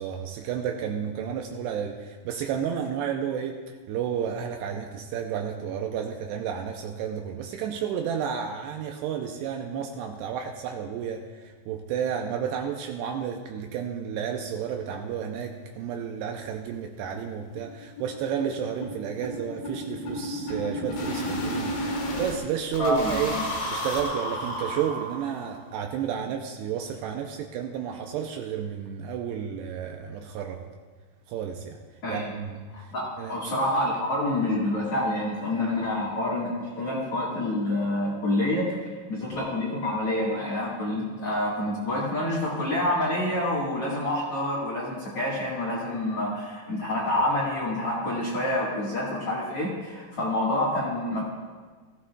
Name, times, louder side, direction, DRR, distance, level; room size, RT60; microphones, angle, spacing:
voice 1, 0.0-30.6 31.3-31.8 32.1-32.7 33.2-33.4, right 8 dB, 85° right, 3 dB, 2.5 m, -32 dB
sound 1, 15.5-15.6 15.9-16.0 16.3-16.4 16.7-16.9 17.1-22.4 22.7-25.5, equal, 85° left, 5.1 m, -33 dB
voice 2, 22.8-23.4 32.0-32.3 32.7-38.7 39.1-51.3, left 1 dB, 50° left, -5 dB, 1.9 m, -27 dB
17.5 x 15.0 x 2.4 m, 1.4 s
omnidirectional pair, 5.3 m